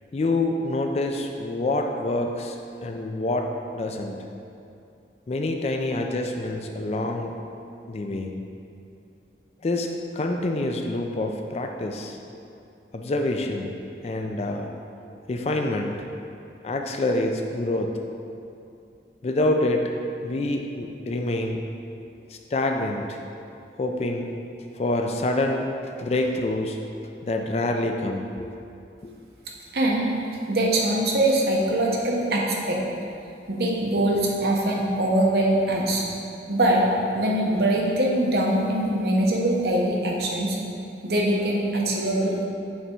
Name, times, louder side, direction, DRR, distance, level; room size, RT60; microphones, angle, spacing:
voice 1, 0.1-2.6 2.8-4.2 5.3-7.3 7.9-8.3 9.6-12.2 12.9-13.7 14.0-14.7 15.3-16.0 16.6-18.0 19.2-19.9 20.2-21.6 22.3-23.2 23.8-24.3 24.7-26.8 27.2-28.5 29.0-29.1, left 2 dB, 35° left, 3 dB, 0.3 m, -26 dB
voice 2, 29.7-30.2 30.5-32.8 33.5-36.0 36.5-36.8 37.1-40.6 41.0-42.4, right 1 dB, 60° right, -2 dB, 0.8 m, -23 dB
6.5 x 3.5 x 4.4 m, 2.6 s
head